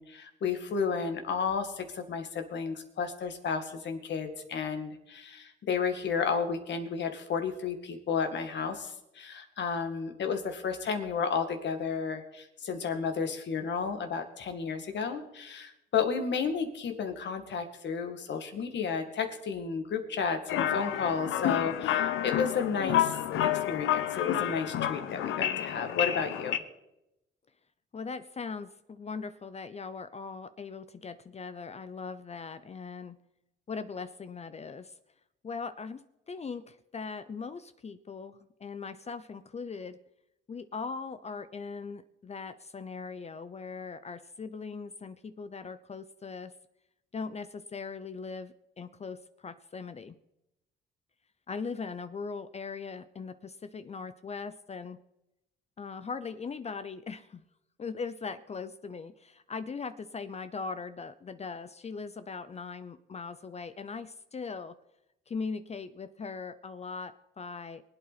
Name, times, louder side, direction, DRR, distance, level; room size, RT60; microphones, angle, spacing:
voice 1, 0.0-23.2 23.4-26.6, left 6 dB, 65° left, 6 dB, 2.1 m, -32 dB
sound 1, 20.5-26.6, left 11 dB, 85° left, 0.9 m, -30 dB
voice 2, 27.9-33.2 33.7-34.9 35.4-36.0 36.3-40.0 40.5-46.5 47.1-50.2 51.5-55.0 55.8-57.4 57.8-64.8 65.3-67.8, left 5 dB, 35° left, 12 dB, 0.6 m, -40 dB
23.0 x 8.6 x 4.2 m, 0.88 s
cardioid pair, 90°, 20 cm